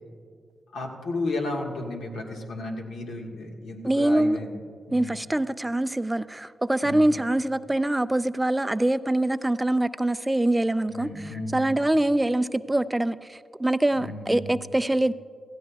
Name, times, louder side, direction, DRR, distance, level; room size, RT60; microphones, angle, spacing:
voice 1, 0.7-4.5 4.9-5.2 6.8-7.2 10.9-11.8 13.9-14.5, left 2 dB, 90° left, 1.6 m, -33 dB
voice 2, 3.8-4.4 4.9-15.1, right 1 dB, 15° right, 0.3 m, -24 dB
16.5 x 14.5 x 2.3 m
cardioid pair, 65°, 0 cm